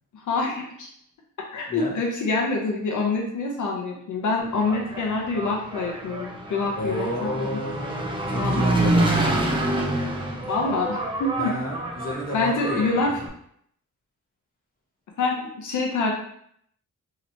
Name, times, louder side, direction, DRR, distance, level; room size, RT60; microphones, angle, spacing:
voice 1, 0.1-0.9 1.5-7.6 8.3-9.0 10.5-11.5 12.3-13.1 15.2-16.1, left 3 dB, 75° left, 0 dB, 0.5 m, -26 dB
voice 2, 1.7-2.0 6.7-9.3 11.4-13.1, equal, 30° left, -3 dB, 0.7 m, -31 dB
Engine, 4.4-13.3, right 1 dB, 15° right, 0.4 m, -27 dB
3.1 x 2.8 x 2.6 m, 0.69 s
wide cardioid pair, 175°, 31 cm